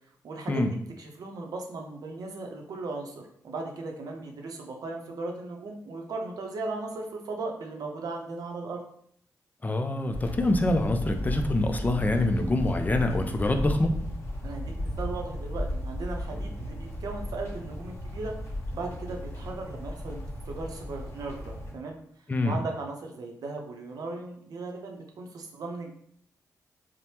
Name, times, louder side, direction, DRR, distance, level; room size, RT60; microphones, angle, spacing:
voice 1, 0.2-8.8 14.4-18.3 18.7-25.9, right 3 dB, 70° right, 2 dB, 0.6 m, -37 dB
voice 2, 9.6-13.9 22.3-22.6, left 2 dB, 25° left, 5 dB, 0.4 m, -25 dB
sound 1, 10.1-21.7, left 1 dB, 45° left, 1.1 m, -35 dB
3.2 x 2.0 x 2.8 m, 0.66 s
cardioid pair, 60°, 7 cm